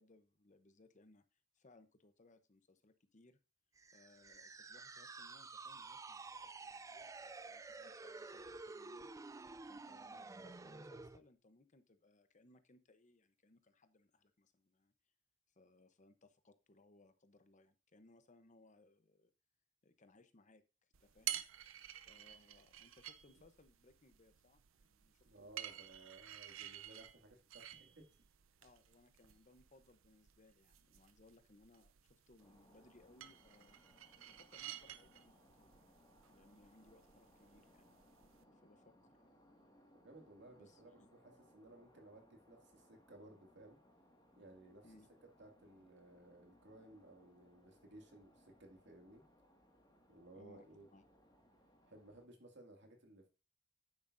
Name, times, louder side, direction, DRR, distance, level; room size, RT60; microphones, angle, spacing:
voice 1, 0.0-3.4 3.9-14.9 15.5-19.3 19.8-21.4 22.1-26.2 28.6-33.8 34.3-35.8 36.3-38.0 38.5-39.3 40.6-41.2 44.8-45.1 50.3-50.7 50.9-51.1, left 2 dB, 40° left, 10 dB, 0.8 m, -67 dB
sound 1, 3.8-11.2, right 3 dB, 15° right, 0.3 m, -51 dB
sound 2, 20.9-38.4, right 12 dB, 85° right, 0.6 m, -52 dB
voice 2, 25.2-28.0 40.0-43.8 44.4-44.9 45.4-49.2 50.1-50.9 51.9-53.3, right 2 dB, 60° right, 2 dB, 2.3 m, -59 dB
sound 3, 32.4-52.3, equal, 20° left, 1.9 m, -68 dB
9.6 x 8.0 x 2.6 m, 0.32 s
head